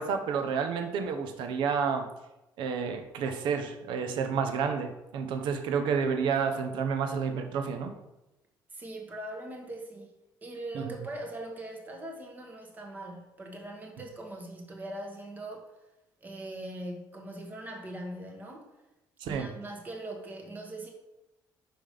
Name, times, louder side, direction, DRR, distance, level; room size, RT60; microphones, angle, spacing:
voice 1, 0.0-2.1 2.6-7.9 10.7-10.9 19.2-19.5, right 6 dB, 80° right, 7 dB, 0.8 m, -30 dB
voice 2, 8.7-10.2 10.4-15.7 16.2-18.7 19.3-20.9, right 1 dB, 20° right, 2 dB, 1.2 m, -41 dB
5.8 x 5.2 x 5.0 m, 0.94 s
cardioid pair, 175°, 8 cm